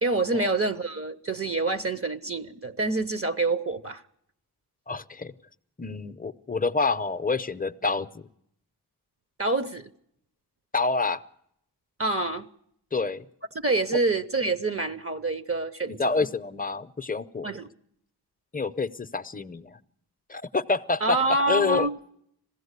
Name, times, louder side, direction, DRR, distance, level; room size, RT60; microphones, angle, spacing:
voice 1, 0.0-4.0 9.4-9.9 12.0-12.5 13.5-16.3 17.4-17.7 21.0-22.0, right 2 dB, 35° right, 0.8 m, -27 dB
voice 2, 4.9-5.3 5.8-8.3 10.7-11.2 12.9-13.2 15.9-17.5 18.5-19.8 20.3-21.9, left 4 dB, 20° left, 0.7 m, -28 dB
21.0 x 16.0 x 8.2 m
wide cardioid pair, 100°, 40 cm